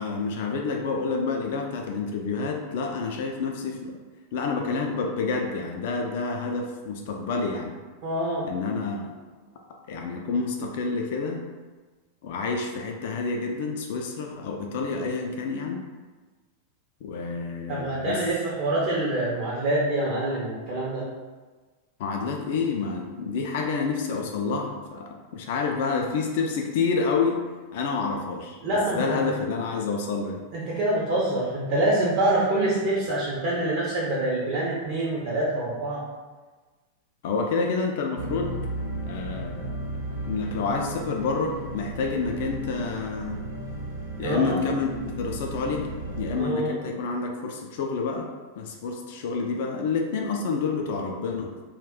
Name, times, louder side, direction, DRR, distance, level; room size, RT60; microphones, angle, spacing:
voice 1, 0.0-3.9 4.3-7.8 8.4-9.2 9.9-11.5 12.2-15.9 17.0-18.2 22.0-27.4 27.7-30.4 37.2-38.6 39.1-39.8 40.3-43.4 44.2-48.3 48.6-51.5, left 4 dB, 50° left, 2 dB, 0.3 m, -28 dB
voice 2, 8.0-8.5 17.7-21.1 28.6-29.3 30.5-36.0 44.2-44.6 46.4-46.8, right 1 dB, 45° right, -5 dB, 0.6 m, -26 dB
sound 1, 38.1-46.4, right 1 dB, 85° right, 0.6 m, -34 dB
2.3 x 2.2 x 3.6 m, 1.3 s
figure-of-eight pair, 90°, 0 cm